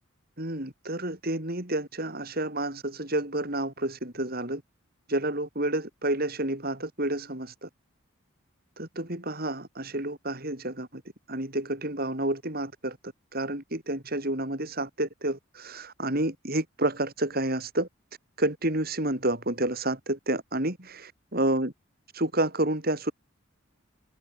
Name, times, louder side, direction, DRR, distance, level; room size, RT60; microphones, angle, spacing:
voice 1, 0.4-4.6 5.1-7.7 8.8-11.0 11.3-13.0 13.3-17.9 18.4-21.7 22.1-23.1, right 1 dB, 45° right, 4.6 m, -29 dB
head